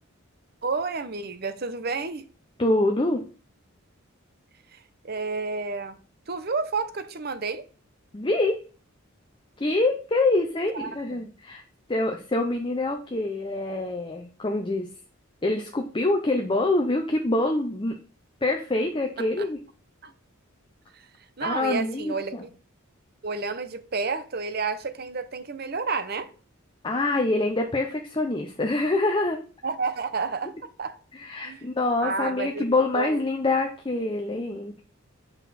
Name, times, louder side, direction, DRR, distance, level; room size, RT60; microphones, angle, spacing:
voice 1, 0.6-2.3 4.7-6.0 6.3-7.6 10.7-11.3 19.2-19.5 20.0-20.1 20.9-21.1 21.4-22.5 23.2-26.3 29.6-31.0 31.4-31.7 32.0-33.2, right 4 dB, 50° right, 0.7 m, -31 dB
voice 2, 2.6-3.2 8.1-8.6 9.6-11.6 11.9-14.9 15.4-17.9 18.4-19.6 21.4-22.4 26.8-29.4 31.1-34.8, left 2 dB, 25° left, 0.6 m, -25 dB
7.9 x 5.5 x 4.2 m
head